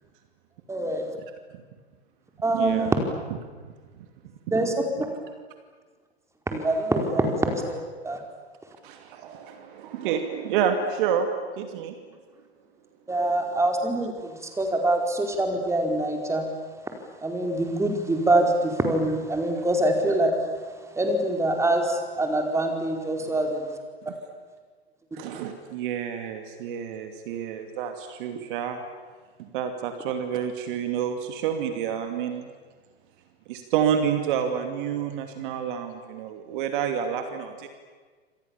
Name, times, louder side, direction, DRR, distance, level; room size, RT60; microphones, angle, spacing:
voice 1, 0.7-1.1 2.4-3.0 4.5-4.8 6.5-8.2 13.1-16.5 17.2-20.4 20.9-23.8, right 1 dB, 10° right, 3 dB, 4.6 m, -24 dB
voice 2, 2.5-2.9 3.6-3.7 8.8-11.3 11.6-11.9 23.2-23.3 25.1-28.8 29.4-32.5 33.5-37.7, right 8 dB, 50° right, 6 dB, 2.8 m, -29 dB
29.0 x 26.5 x 7.3 m, 1.5 s
figure-of-eight pair, 95°, 33 cm